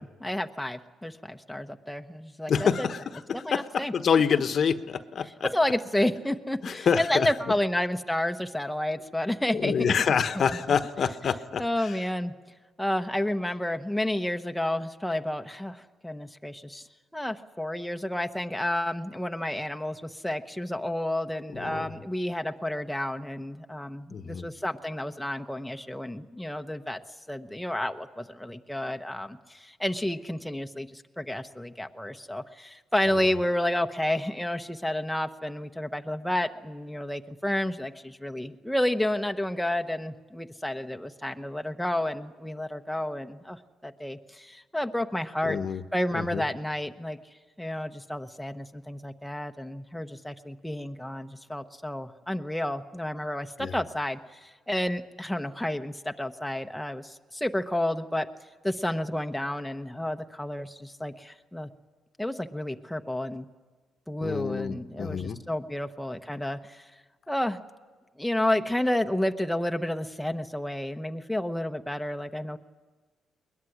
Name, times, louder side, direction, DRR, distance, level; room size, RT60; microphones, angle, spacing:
voice 1, 0.2-2.9 3.3-3.9 4.3-4.4 5.5-9.9 10.3-10.4 11.6-12.3 12.8-16.9 17.1-27.0 27.3-45.6 45.9-47.2 47.6-58.3 58.6-61.7 62.2-63.5 64.1-66.9 67.3-67.6 68.2-72.6, left 1 dB, 5° left, 5 dB, 1.0 m, -30 dB
voice 2, 2.5-3.0 3.3-5.5 6.6-7.3 9.5-11.9 21.5-21.9 24.1-24.5 45.5-45.8 46.1-46.4 53.6-53.7 64.2-65.4, left 7 dB, 55° left, 11 dB, 1.1 m, -27 dB
22.0 x 20.0 x 10.0 m, 1.3 s
cardioid pair, 90°, 0 cm